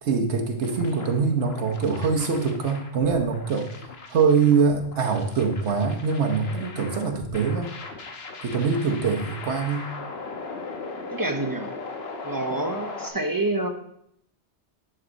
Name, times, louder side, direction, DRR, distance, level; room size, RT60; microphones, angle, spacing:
voice 1, 0.0-3.7 4.1-7.7 8.4-9.9, right 5 dB, 80° right, 4 dB, 1.3 m, -23 dB
sound 1, 0.6-13.1, left 3 dB, 65° left, 1.3 m, -39 dB
voice 2, 11.1-11.7 12.2-13.7, right 2 dB, 20° right, 5 dB, 0.8 m, -27 dB
11.0 x 6.6 x 4.0 m, 0.73 s
omnidirectional pair, 1.1 m